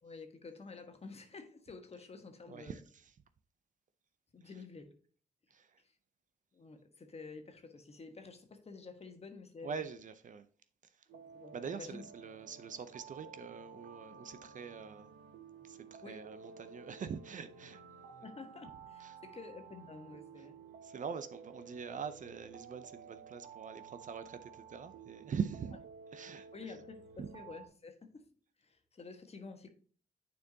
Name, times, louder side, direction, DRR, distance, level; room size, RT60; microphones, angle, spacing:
voice 1, 0.0-2.8 4.3-5.0 5.8-5.9 6.5-9.9 11.1-12.1 16.0-16.3 18.2-20.6 26.5-28.3 28.6-29.7, left 4 dB, 40° left, 1.2 m, -50 dB
voice 2, 2.5-2.8 5.5-5.7 9.6-10.5 11.5-15.1 15.7-17.8 18.1-18.2 19.0-19.2 20.8-25.8 26.1-26.5 27.2-27.3, right 6 dB, 55° right, 0.6 m, -43 dB
sound 1, 11.1-27.7, right 6 dB, 85° right, 0.8 m, -53 dB
9.2 x 4.4 x 2.7 m
supercardioid pair, 50°, 16 cm